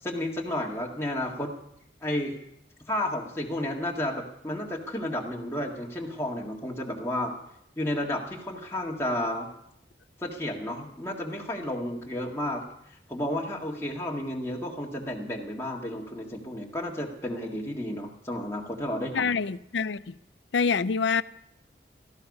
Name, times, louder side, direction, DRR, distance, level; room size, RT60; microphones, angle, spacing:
voice 1, 0.0-1.5 2.0-2.4 2.9-7.3 7.8-9.5 10.2-12.6 13.1-19.3, left 1 dB, 15° left, 1.9 m, -32 dB
voice 2, 19.1-20.0 20.5-21.2, left 5 dB, 85° left, 0.5 m, -25 dB
17.5 x 14.5 x 5.4 m
head